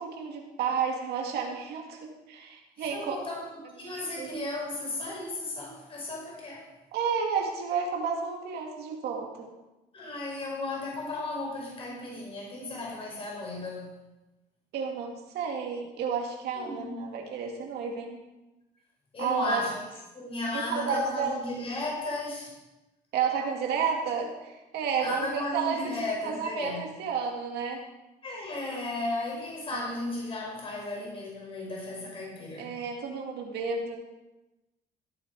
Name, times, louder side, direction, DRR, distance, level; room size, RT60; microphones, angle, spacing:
voice 1, 0.0-3.2 3.8-4.3 6.9-9.5 14.7-18.2 19.2-19.6 20.5-21.4 23.1-27.8 29.7-29.9 32.6-34.0, right 6 dB, 75° right, 1 dB, 2.3 m, -31 dB
voice 2, 2.8-6.7 9.9-14.0 16.6-17.1 19.1-22.6 25.0-26.9 28.2-32.8, left 2 dB, 35° left, -3 dB, 5.4 m, -35 dB
16.0 x 8.5 x 4.8 m, 1.0 s
cardioid pair, 110°, 17 cm